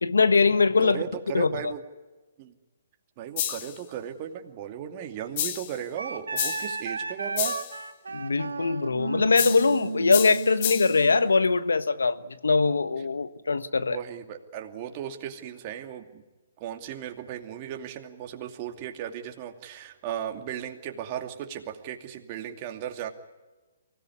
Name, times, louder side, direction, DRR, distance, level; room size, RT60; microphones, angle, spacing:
voice 1, 0.0-1.0 1.3-1.5 8.1-14.0, left 4 dB, 80° left, 1.3 m, -22 dB
voice 2, 0.8-1.8 2.4-2.5 3.2-7.6 13.9-16.2 16.6-23.1, right 10 dB, 35° right, 2.5 m, -36 dB
sound 1, 3.4-3.8 5.4-5.8 6.4-6.8 7.4-7.8 9.4-9.8 10.1-11.0, left 11 dB, 45° left, 1.6 m, -30 dB
Wind instrument woodwind instrument, 6.0-11.3, right 4 dB, 80° right, 1.7 m, -34 dB
24.0 x 17.5 x 9.8 m
hypercardioid pair, 135°, 0 cm